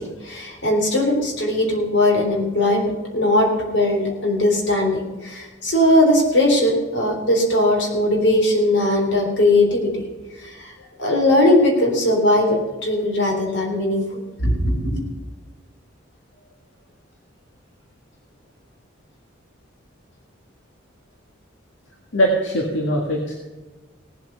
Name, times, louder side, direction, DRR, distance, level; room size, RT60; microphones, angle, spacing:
voice 1, 0.0-10.0 10.4-10.7 11.0-14.0 14.4-15.0, left 1 dB, 70° left, 1 dB, 3.6 m, -19 dB
voice 2, 22.1-23.3, equal, 85° left, 0 dB, 1.9 m, -21 dB
17.5 x 8.1 x 5.6 m, 1.2 s
head